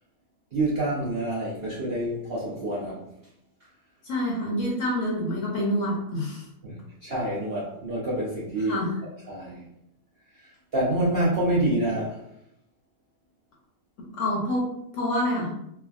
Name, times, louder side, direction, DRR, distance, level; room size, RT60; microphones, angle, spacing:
voice 1, 0.5-3.1 6.6-8.8 9.3-9.6 10.7-12.2, right 1 dB, 55° right, -8 dB, 0.7 m, -27 dB
voice 2, 4.0-6.4 8.7-8.9 14.2-15.5, left 1 dB, 60° left, -4 dB, 0.9 m, -27 dB
3.3 x 2.1 x 2.3 m, 0.79 s
omnidirectional pair, 1.7 m